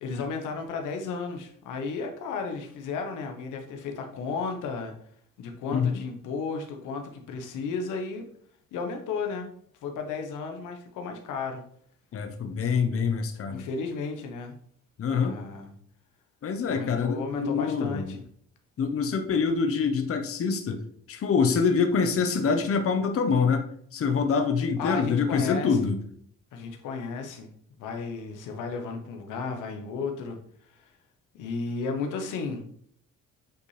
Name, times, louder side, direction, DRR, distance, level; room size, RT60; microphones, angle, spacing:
voice 1, 0.0-4.9 5.4-8.3 8.7-9.5 9.8-11.6 13.5-14.5 15.1-15.7 16.7-18.2 24.8-25.8 26.5-27.5 27.8-30.4 30.7-30.9 31.3-32.7, left 4 dB, 90° left, 4 dB, 1.2 m, -34 dB
voice 2, 12.1-13.6 15.0-15.4 16.4-18.2 18.8-20.8 21.1-26.0, left 5 dB, 50° left, 6 dB, 0.9 m, -25 dB
8.1 x 4.2 x 3.3 m, 0.63 s
cardioid pair, 90°, 30 cm